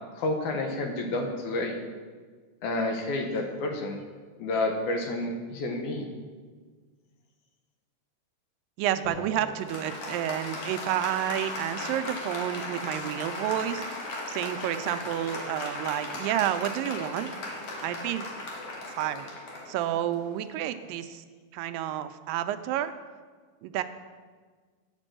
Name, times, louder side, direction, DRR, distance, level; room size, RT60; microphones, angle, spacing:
voice 1, 0.2-1.8 2.6-4.0 4.4-6.1, left 2 dB, 70° left, 3 dB, 2.2 m, -29 dB
voice 2, 8.8-14.0 14.3-17.3 17.8-18.2 18.9-19.3 19.7-21.2 21.5-22.9 23.6-23.8, right 12 dB, 90° right, 10 dB, 2.3 m, -30 dB
Applause, 9.0-20.9, left 2 dB, 55° left, 2.0 m, -37 dB
9.8 x 5.2 x 7.5 m, 1.5 s
omnidirectional pair, 3.9 m